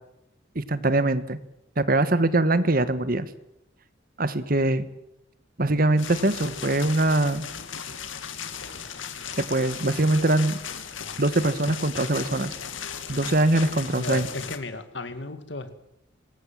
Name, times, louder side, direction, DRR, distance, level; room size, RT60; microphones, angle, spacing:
voice 1, 0.5-1.4 1.8-3.3 4.2-4.8 5.6-7.4 9.4-10.6 11.2-12.5 13.1-14.3, right 2 dB, 50° right, 13 dB, 1.4 m, -22 dB
sound 1, 6.0-14.6, left 7 dB, 80° left, 2.2 m, -36 dB
voice 2, 14.0-15.7, left 3 dB, 65° left, 10 dB, 2.1 m, -34 dB
26.0 x 21.0 x 7.6 m, 0.82 s
head